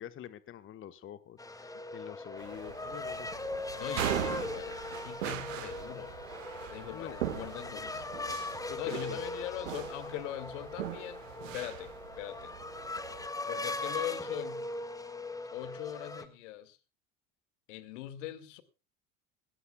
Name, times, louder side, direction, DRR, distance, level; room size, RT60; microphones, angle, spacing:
voice 1, 0.0-3.3 6.9-7.1 8.6-9.2, left 10 dB, 30° left, 1.1 m, -46 dB
sound 1, 1.4-16.2, left 2 dB, 10° left, 1.7 m, -40 dB
sound 2, 2.4-13.3, right 12 dB, 70° right, 1.7 m, -40 dB
voice 2, 3.7-6.1 6.7-8.3 8.8-11.3 11.5-12.5 13.5-14.7 15.5-16.8 17.7-18.6, left 13 dB, 60° left, 2.1 m, -41 dB
19.0 x 17.0 x 2.3 m
figure-of-eight pair, 75°, 40 cm